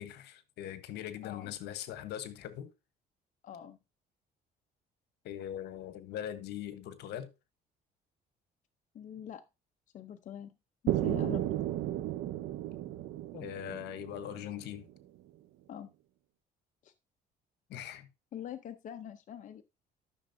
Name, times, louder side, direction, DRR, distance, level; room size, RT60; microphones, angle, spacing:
voice 1, 0.0-2.7 5.2-7.3 13.3-14.9 17.7-18.1, left 10 dB, 80° left, 1.2 m, -41 dB
voice 2, 1.2-1.5 3.4-3.8 8.9-9.4 9.9-10.6 10.8-11.4 15.7-15.9 16.8-16.9 18.3-19.6, left 9 dB, 50° left, 0.7 m, -44 dB
sound 1, 10.9-14.8, right 13 dB, 80° right, 0.7 m, -34 dB
12.5 x 6.2 x 2.7 m
cardioid pair, 110°, 17 cm